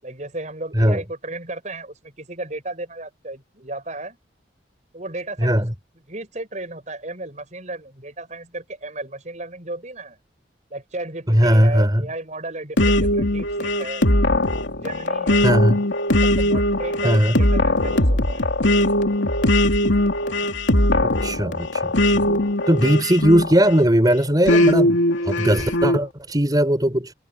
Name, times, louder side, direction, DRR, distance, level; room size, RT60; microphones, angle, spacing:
voice 1, 0.0-4.2 4.9-5.6 6.1-10.2 10.7-14.1 14.8-15.5 16.2-18.5 22.5-22.7, right 2 dB, 40° right, 6.9 m, -34 dB
voice 2, 5.4-5.7 11.3-12.0 15.4-15.8 17.0-17.4 21.0-22.4 22.7-25.0 25.2-27.1, equal, 20° right, 4.7 m, -19 dB
sound 1, 12.8-23.8 24.5-26.0, left 1 dB, 85° left, 2.9 m, -20 dB
head